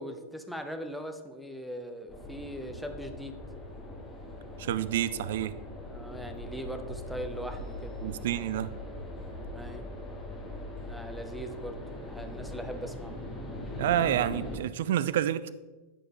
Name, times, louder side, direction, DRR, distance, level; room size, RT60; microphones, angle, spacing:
voice 1, 0.0-3.4 5.9-8.0 9.5-9.9 10.8-13.1, equal, ahead, 5 dB, 0.7 m, -40 dB
sound 1, 2.1-14.6, left 1 dB, 15° left, 1.6 m, -41 dB
voice 2, 4.6-5.5 8.0-8.7 13.8-15.5, right 11 dB, 55° right, 15 dB, 0.3 m, -28 dB
9.4 x 5.0 x 3.7 m, 1.2 s
figure-of-eight pair, 90°, 0 cm